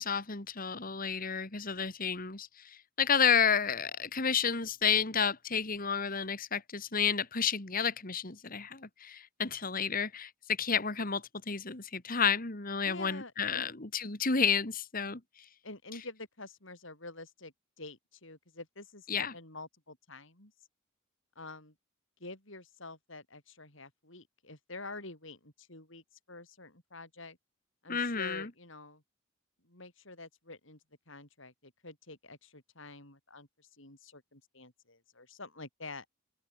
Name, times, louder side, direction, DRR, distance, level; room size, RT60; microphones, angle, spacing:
voice 1, 0.0-2.5 3.0-10.3 10.6-15.2 19.1-19.3 27.9-28.5, left 6 dB, 40° left, 2.1 m, -31 dB
voice 2, 12.8-13.7 15.6-20.5 21.4-21.7 22.2-27.4 27.8-29.0 29.6-30.8 31.1-36.1, left 3 dB, 60° left, 7.4 m, -48 dB
open air
head